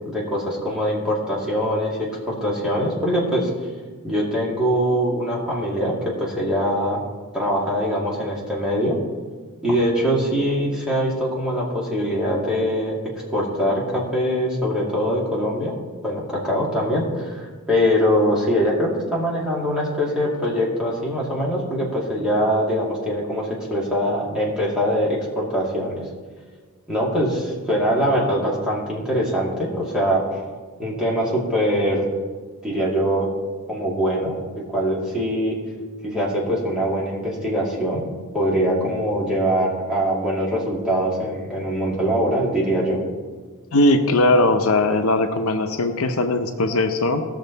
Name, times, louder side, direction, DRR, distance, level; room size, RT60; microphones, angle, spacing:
voice 1, 0.0-3.5 4.0-5.9 6.2-7.0 7.3-9.0 9.6-12.9 13.3-15.8 16.0-25.9 26.9-30.2 30.8-32.1 32.6-33.3 33.7-34.4 34.7-35.5 36.0-38.0 38.3-43.0, equal, 5° right, -6 dB, 2.4 m, -23 dB
voice 2, 43.7-47.2, left 2 dB, 75° left, 6 dB, 0.8 m, -19 dB
17.5 x 6.6 x 4.1 m, 1.5 s
head